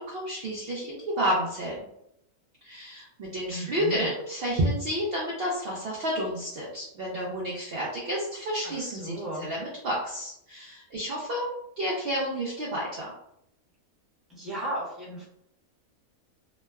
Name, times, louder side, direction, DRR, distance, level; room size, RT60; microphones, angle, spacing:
voice 1, 0.0-1.8 2.6-13.1, equal, 60° right, -5 dB, 0.7 m, -30 dB
voice 2, 3.5-4.1 8.6-9.5 14.3-15.3, right 1 dB, ahead, -8 dB, 0.8 m, -35 dB
3.0 x 2.1 x 2.2 m, 0.77 s
omnidirectional pair, 1.4 m